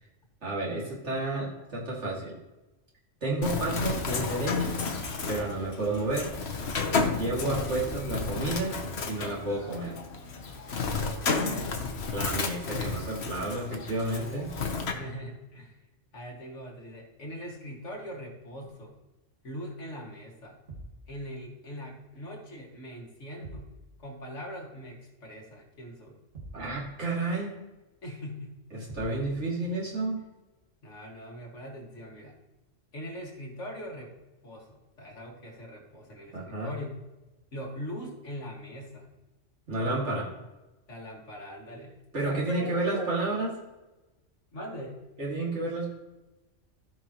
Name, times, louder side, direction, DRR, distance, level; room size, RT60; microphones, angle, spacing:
voice 1, 0.4-2.3 3.2-4.9 5.3-6.3 7.1-8.8 9.1-10.0 12.1-14.5 26.5-27.6 28.7-30.2 36.3-36.7 39.7-40.3 42.1-43.5 45.2-45.9, right 2 dB, 65° right, -4 dB, 2.7 m, -31 dB
Bird, 3.4-14.9, left 4 dB, 60° left, 1.2 m, -32 dB
voice 2, 11.3-11.9 13.4-14.2 14.5-15.8 16.1-18.9 19.4-20.6 21.1-23.7 24.0-26.2 28.0-28.5 30.8-32.3 32.9-34.1 34.4-36.9 37.5-39.1 39.8-40.1 40.9-42.0 42.2-43.1 44.5-45.0, equal, 75° left, -1 dB, 2.3 m, -41 dB
sound 1, 20.7-21.0 23.4-23.8 26.3-26.7 28.9-29.3, right 2 dB, 45° right, 2.2 m, -44 dB
15.0 x 5.6 x 3.0 m, 1.1 s
omnidirectional pair, 1.3 m